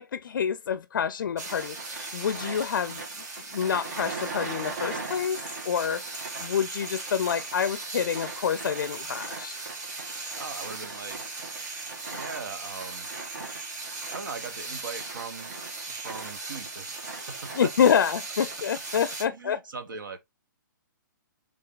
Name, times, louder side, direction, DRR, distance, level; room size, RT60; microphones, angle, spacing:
voice 1, 0.0-3.0 3.5-5.4 5.6-6.0 6.4-9.6 17.6-19.6, left 7 dB, 80° left, 0.4 m, -27 dB
sound 1, 1.4-19.2, right 3 dB, 55° right, 1.7 m, -37 dB
voice 2, 10.3-11.5 12.1-13.1 14.1-17.7 19.3-20.2, right 5 dB, 80° right, 1.1 m, -40 dB
3.7 x 3.3 x 3.8 m
hypercardioid pair, 160°, 11 cm